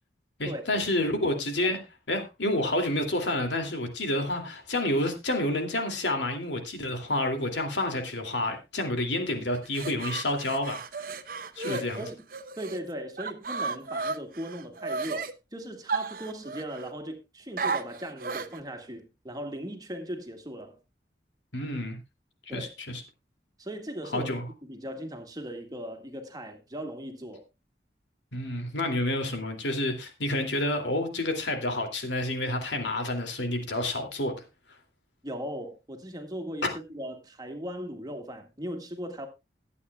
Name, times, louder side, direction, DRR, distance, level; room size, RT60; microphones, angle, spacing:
voice 1, 0.4-1.8 2.1-11.0 11.6-12.0 21.5-22.0 22.5-23.0 24.1-24.4 28.3-34.4 36.6-36.7, left 1 dB, 85° left, 2.6 m, -29 dB
sound 1, 9.5-12.8 13.2-15.3 15.9-16.9 17.6-18.6, right 4 dB, 50° right, 0.9 m, -34 dB
voice 2, 11.7-12.2 12.6-20.8 22.5-22.7 23.6-24.3 24.6-27.4 35.2-39.3, equal, 20° right, 1.8 m, -38 dB
22.0 x 8.5 x 2.3 m
head